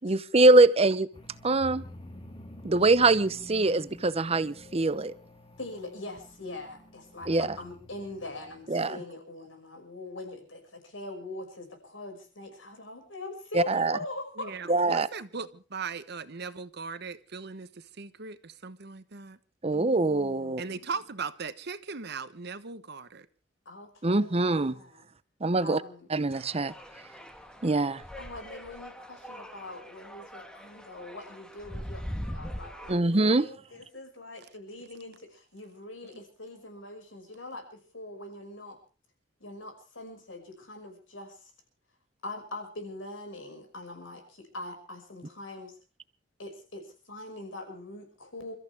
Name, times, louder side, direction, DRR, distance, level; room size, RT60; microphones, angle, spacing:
voice 1, 0.0-1.1 1.4-1.8 2.6-5.1 7.3-7.5 8.7-9.0 13.5-14.0 14.7-15.1 19.6-20.6 24.0-24.8 25.4-25.8 26.1-26.7 27.6-28.0 32.9-33.5, right 2 dB, 30° right, 0.8 m, -23 dB
sound 1, 1.1-8.8, left 1 dB, 25° left, 2.4 m, -49 dB
voice 2, 5.6-14.8 19.7-20.9 23.6-25.1 25.6-26.1 28.2-38.8 39.4-41.5 42.2-45.8 46.4-48.5, left 2 dB, 85° left, 6.1 m, -43 dB
voice 3, 14.4-19.4 20.6-23.3, right 5 dB, 60° right, 1.1 m, -38 dB
sound 2, 26.3-33.0, equal, 5° left, 1.5 m, -42 dB
29.0 x 14.0 x 3.5 m
head